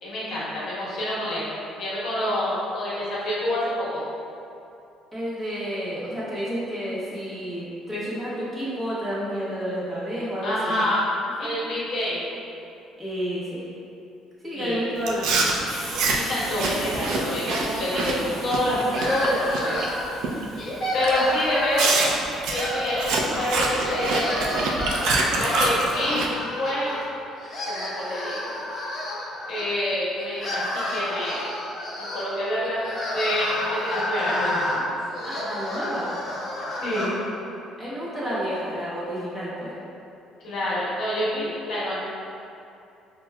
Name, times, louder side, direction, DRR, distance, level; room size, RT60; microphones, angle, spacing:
voice 1, 0.0-1.5 1.8-4.0 10.4-11.0 11.4-12.2 14.5-14.8 16.1-19.8 20.9-22.0 22.5-24.7 25.3-26.3 26.6-26.9 27.7-28.5 29.5-31.5 32.0-32.8 33.1-34.7 36.8-37.1 40.4-41.9, left 1 dB, 45° left, -8 dB, 1.1 m, -27 dB
voice 2, 5.1-10.9 11.4-11.5 13.0-13.7 14.4-15.5 35.2-36.1 37.8-39.7, equal, 10° right, -10 dB, 0.9 m, -30 dB
Chewing mastication, 15.0-19.9 20.2-20.6 21.0-21.2 21.8-26.3, right 3 dB, 70° right, 0.4 m, -25 dB
Hiss, 15.7-23.1, right 1 dB, 85° right, 1.1 m, -42 dB
sound 1, 18.9-20.2 20.6-22.0 22.5-23.5 23.8-27.0 27.4-29.6 30.2-37.1, left 1 dB, 25° left, 0.8 m, -30 dB
5.7 x 2.2 x 2.2 m, 2.6 s
cardioid pair, 160°, 0 cm